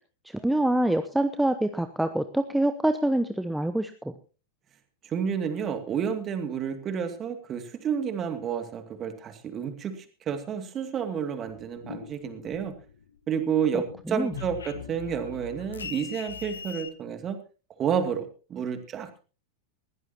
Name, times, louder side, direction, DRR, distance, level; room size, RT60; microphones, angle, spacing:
voice 1, 0.2-4.1 13.7-14.3, right 1 dB, 5° right, 9 dB, 0.9 m, -26 dB
voice 2, 5.0-12.7 13.3-17.4 17.8-19.2, right 7 dB, 25° right, 8 dB, 2.5 m, -30 dB
sound 1, 11.5-13.2 13.5-16.9, left 7 dB, 70° left, 1.2 m, -41 dB
21.0 x 16.0 x 2.9 m, 0.35 s
figure-of-eight pair, 90°, 0 cm